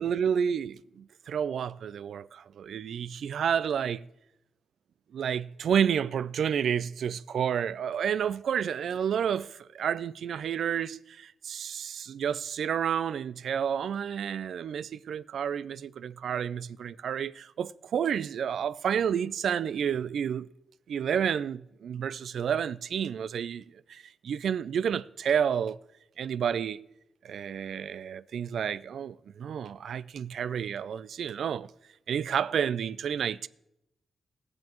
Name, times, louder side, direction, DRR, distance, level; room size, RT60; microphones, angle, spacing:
voice 1, 0.0-4.0 5.1-20.5 20.9-25.8 26.2-26.8 27.2-31.7 32.1-33.5, right 8 dB, 70° right, 0.3 m, -30 dB
20.5 x 7.4 x 3.0 m
wide cardioid pair, 160°, 0 cm